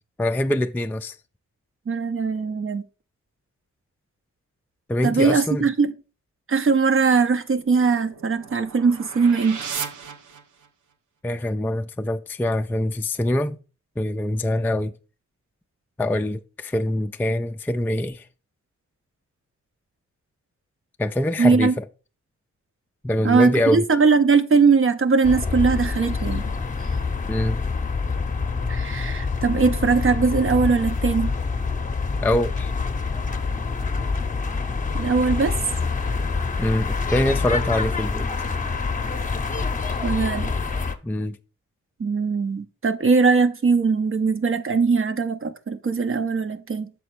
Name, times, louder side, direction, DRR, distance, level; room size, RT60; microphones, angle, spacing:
voice 1, 0.2-1.2 4.9-5.7 11.2-13.6 14.0-14.9 16.0-18.3 21.0-21.8 23.0-23.8 27.3-27.6 32.2-32.7 36.6-38.3 41.0-41.4, left 1 dB, 5° left, 0.3 m, -24 dB
voice 2, 1.9-2.8 5.0-5.9 6.5-9.6 21.4-21.8 23.2-26.4 28.7-31.3 35.0-35.6 40.0-40.5 42.0-46.9, right 4 dB, 45° right, 0.7 m, -20 dB
sound 1, 7.5-10.9, right 6 dB, 90° right, 0.7 m, -36 dB
sound 2, 25.2-41.0, left 4 dB, 25° left, 0.8 m, -26 dB
6.9 x 4.2 x 4.7 m
cardioid pair, 70°, 30 cm